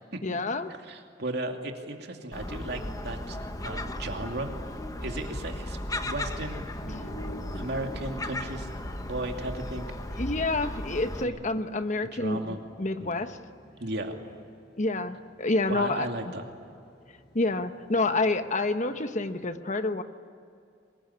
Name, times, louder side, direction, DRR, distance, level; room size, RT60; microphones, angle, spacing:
voice 1, 0.2-0.7 10.2-13.4 14.8-16.3 17.3-20.0, left 2 dB, 40° left, 9 dB, 1.1 m, -28 dB
voice 2, 0.9-4.5 5.0-6.7 7.5-8.7 9.0-9.9 11.2-11.3 12.0-12.6 13.0-13.1 13.8-14.1 15.7-16.5, right 2 dB, 60° right, 3 dB, 2.6 m, -35 dB
Gull seagull, 2.3-11.2, left 1 dB, 20° left, 1.3 m, -36 dB
sound 1, 6.7-19.5, equal, 55° left, 7.3 m, -50 dB
24.0 x 21.5 x 10.0 m, 2.4 s
head